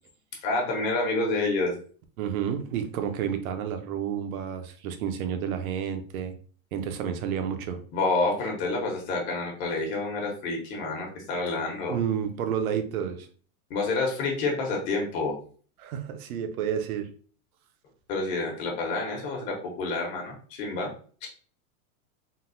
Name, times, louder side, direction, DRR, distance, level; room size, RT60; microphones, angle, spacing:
voice 1, 0.4-1.7 7.9-11.9 13.7-15.4 18.1-20.9 21.2-21.3, left 3 dB, 45° left, 0 dB, 1.0 m, -28 dB
voice 2, 2.2-6.3 6.7-7.8 11.9-13.3 15.8-17.1, right 8 dB, 75° right, 7 dB, 0.7 m, -30 dB
3.8 x 2.1 x 2.5 m, 0.43 s
supercardioid pair, 155°, 43 cm